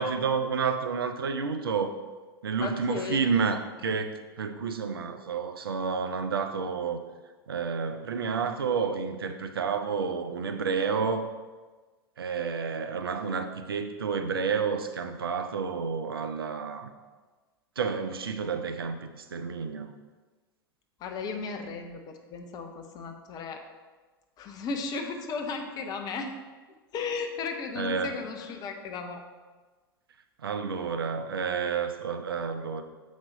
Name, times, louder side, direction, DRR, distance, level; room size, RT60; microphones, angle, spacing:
voice 1, 0.0-1.9 2.4-7.0 7.5-11.3 12.2-16.9 17.8-20.0 27.8-28.1 30.4-32.8, right 5 dB, 70° right, 7 dB, 0.6 m, -30 dB
voice 2, 2.6-3.3 21.0-23.6 24.4-26.4 26.9-29.2, left 4 dB, 30° left, 5 dB, 0.8 m, -35 dB
7.1 x 5.2 x 3.9 m, 1.3 s
figure-of-eight pair, 90°, 13 cm